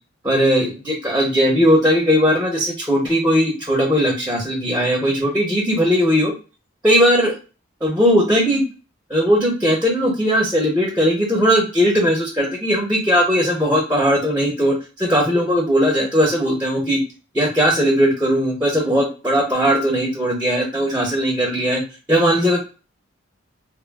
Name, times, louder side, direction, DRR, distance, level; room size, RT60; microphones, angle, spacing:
voice 1, 0.2-6.3 6.8-7.3 7.8-8.6 9.1-17.0 17.3-21.8 22.1-22.6, equal, 10° right, 0 dB, 0.6 m, -18 dB
3.1 x 2.3 x 2.2 m, 0.33 s
head